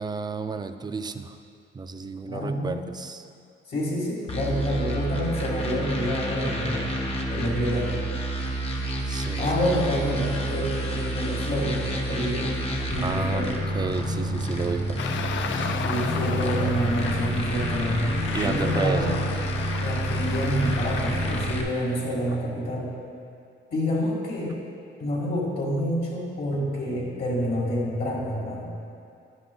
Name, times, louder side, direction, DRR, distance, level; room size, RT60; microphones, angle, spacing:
voice 1, 0.0-1.4 1.7-3.3 8.4-8.6 9.1-9.6 13.0-15.0 18.3-19.1, right 4 dB, 20° right, 9 dB, 0.3 m, -31 dB
voice 2, 2.3-2.8 3.7-6.9 7.3-7.9 9.4-12.6 12.9-13.6 15.6-18.2 18.4-19.2 19.8-22.9 23.7-24.5 25.0-28.7, equal, 50° left, -6 dB, 1.8 m, -27 dB
sound 1, 4.3-21.6, right 1 dB, 30° left, 0.9 m, -29 dB
Traffic noise roadway noise, 15.0-21.5, left 6 dB, 70° left, 0.5 m, -34 dB
9.8 x 9.8 x 2.3 m, 2.4 s
cardioid pair, 110°, 20 cm